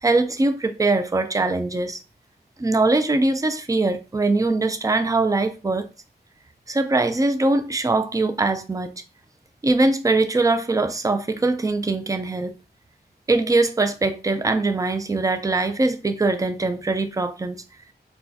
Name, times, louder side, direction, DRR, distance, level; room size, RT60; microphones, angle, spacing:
voice 1, 0.0-2.0 2.6-5.9 6.7-8.9 9.6-12.5 13.3-17.6, right 2 dB, 20° right, 0.4 m, -22 dB
4.0 x 2.3 x 2.8 m
wide cardioid pair, 65°, 17 cm